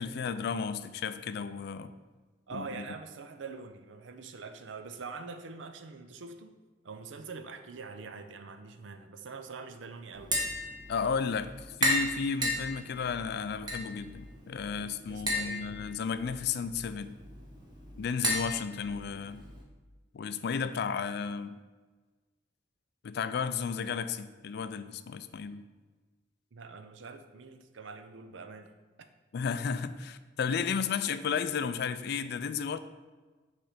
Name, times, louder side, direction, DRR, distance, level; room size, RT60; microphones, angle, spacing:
voice 1, 0.0-1.9 2.5-2.8 10.9-11.5 11.8-17.2 18.0-19.4 20.1-21.6 23.0-25.6 29.3-32.8, left 6 dB, 60° left, 12 dB, 0.4 m, -33 dB
voice 2, 2.5-6.6 6.8-10.4 15.1-15.7 26.5-28.7 29.0-29.1, right 4 dB, 80° right, 8 dB, 0.6 m, -44 dB
Tap, 10.1-19.6, equal, 25° right, 1.2 m, -35 dB
6.4 x 3.2 x 5.8 m, 1.3 s
head